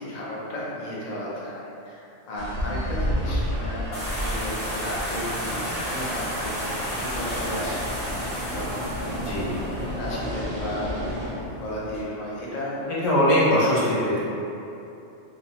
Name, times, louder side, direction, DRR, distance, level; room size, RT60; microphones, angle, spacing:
voice 1, 0.0-7.8 8.5-12.7, left 1 dB, 55° left, -6 dB, 0.4 m, -34 dB
sound 1, 2.3-11.3, equal, 60° right, 0.5 m, -31 dB
sound 2, 3.9-12.0, equal, 30° left, 0.9 m, -33 dB
voice 2, 12.9-14.2, left 1 dB, 80° left, -7 dB, 1.0 m, -21 dB
2.6 x 2.1 x 2.8 m, 2.8 s
omnidirectional pair, 1.3 m